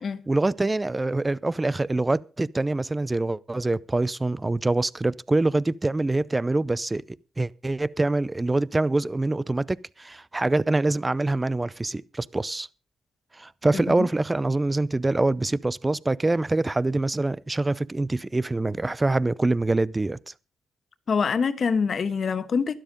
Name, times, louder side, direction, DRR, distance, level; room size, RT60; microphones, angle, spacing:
voice 1, 0.3-12.7 13.3-20.2, right 2 dB, 20° right, 0.6 m, -25 dB
voice 2, 21.1-22.8, left 5 dB, 55° left, 1.3 m, -25 dB
12.5 x 11.5 x 5.2 m
cardioid pair, 80°, 0 cm